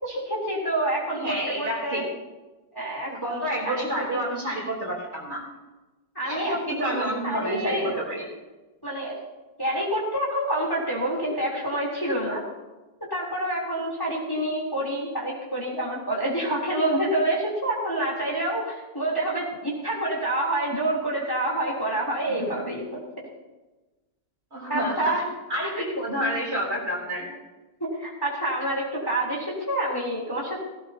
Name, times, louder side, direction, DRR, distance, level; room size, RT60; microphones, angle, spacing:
voice 1, 0.0-2.0 2.7-4.2 6.1-8.0 8.8-9.2 9.6-12.4 13.1-22.8 24.7-25.2 25.8-25.9 27.8-30.6, right 1 dB, 10° left, -4 dB, 3.4 m, -27 dB
voice 2, 1.2-2.1 3.1-5.4 6.3-8.3 22.2-22.7 24.5-27.3, equal, 35° right, -3 dB, 3.8 m, -29 dB
17.5 x 17.0 x 2.9 m, 1.1 s
omnidirectional pair, 2.0 m